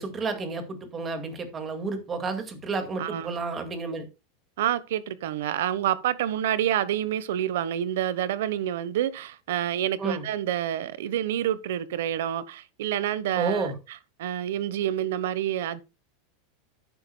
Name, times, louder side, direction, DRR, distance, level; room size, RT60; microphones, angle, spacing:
voice 1, 0.0-4.1 10.0-10.2 13.4-13.8, right 4 dB, 20° right, 2.0 m, -31 dB
voice 2, 3.0-3.4 4.6-13.7 14.2-15.8, right 11 dB, 80° right, 1.0 m, -28 dB
11.5 x 9.6 x 2.2 m
supercardioid pair, 160°, 0 cm